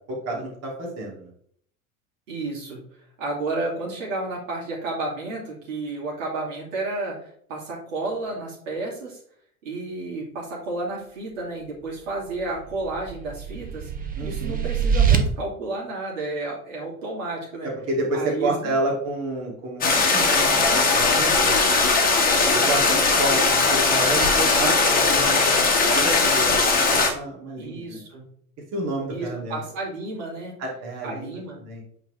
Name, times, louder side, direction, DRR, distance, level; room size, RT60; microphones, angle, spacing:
voice 1, 0.1-1.3 14.2-14.6 17.6-21.8 22.5-25.4 25.9-28.0 28.7-29.6 30.6-31.8, right 2 dB, 35° right, -2 dB, 2.3 m, -30 dB
voice 2, 2.3-2.8 3.2-9.2 9.6-13.9 14.2-17.7 18.1-18.8 27.6-28.2 29.1-30.6 31.0-31.6, right 2 dB, 60° right, -3 dB, 2.4 m, -31 dB
sound 1, 12.4-15.2, right 7 dB, 20° right, 0.8 m, -24 dB
sound 2, 19.8-27.1, left 3 dB, 20° left, 1.4 m, -19 dB
7.9 x 4.0 x 3.2 m, 0.62 s
figure-of-eight pair, 75°, 43 cm